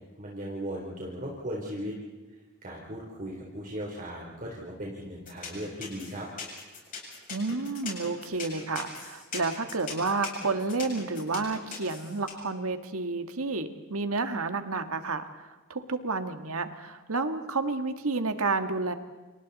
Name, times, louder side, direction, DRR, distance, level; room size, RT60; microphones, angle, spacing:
voice 1, 0.2-2.0 2.6-6.3, equal, 40° right, -3 dB, 3.7 m, -37 dB
sound 1, 5.3-12.3, left 5 dB, 40° left, 7.3 m, -39 dB
voice 2, 7.3-18.9, right 3 dB, 85° right, 8 dB, 1.8 m, -30 dB
29.5 x 28.5 x 4.2 m, 1.2 s
head